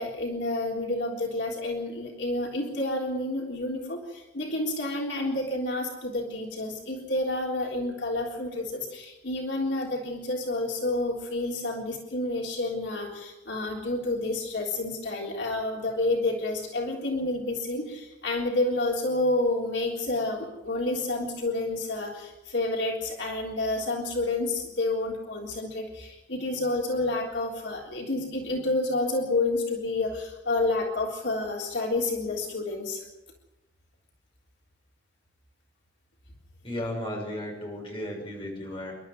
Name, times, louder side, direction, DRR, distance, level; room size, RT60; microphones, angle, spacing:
voice 1, 0.0-33.0, left 2 dB, 75° left, -1 dB, 3.7 m, -29 dB
voice 2, 36.6-38.9, left 1 dB, 30° left, 0 dB, 6.4 m, -34 dB
28.0 x 12.5 x 7.7 m, 0.99 s
head